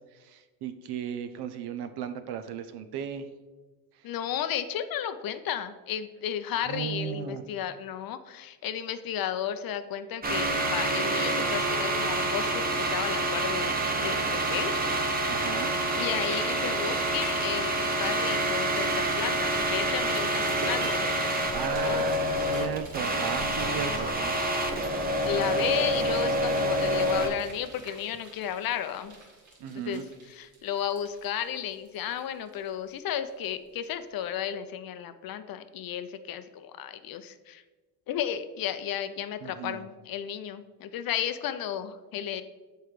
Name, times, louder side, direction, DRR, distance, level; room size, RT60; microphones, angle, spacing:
voice 1, 0.2-3.2 6.7-7.4 15.3-15.7 21.5-24.3 29.6-30.0 39.4-39.8, right 8 dB, 65° right, 9 dB, 0.6 m, -35 dB
voice 2, 4.0-14.7 15.9-22.1 23.7-24.0 24.9-29.1 29.7-37.6 38.1-42.4, left 9 dB, 55° left, 11 dB, 0.5 m, -33 dB
sound 1, 10.2-27.3, right 1 dB, 20° right, 0.8 m, -27 dB
sound 2, 16.3-16.5 16.8-17.6 18.0-18.1 18.5-18.6 19.4-33.0 33.3-33.4, right 1 dB, 45° right, 1.6 m, -43 dB
6.7 x 4.5 x 3.2 m, 1.3 s
cardioid pair, 100°, 43 cm